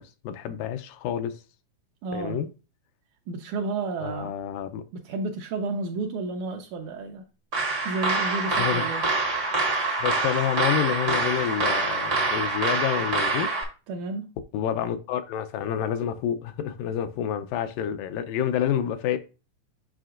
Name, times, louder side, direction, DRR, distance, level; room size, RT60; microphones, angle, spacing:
voice 1, 0.0-1.4 2.1-2.5 4.0-4.8 8.5-8.9 10.0-13.5 14.5-19.2, left 10 dB, 80° left, 2.2 m, -28 dB
voice 2, 2.0-2.4 3.3-4.4 4.9-7.2 7.9-9.0 13.9-14.3, right 3 dB, 80° right, 1.8 m, -31 dB
sound 1, 7.5-13.6, right 3 dB, 60° right, 0.7 m, -25 dB
7.6 x 5.7 x 2.5 m
omnidirectional pair, 4.0 m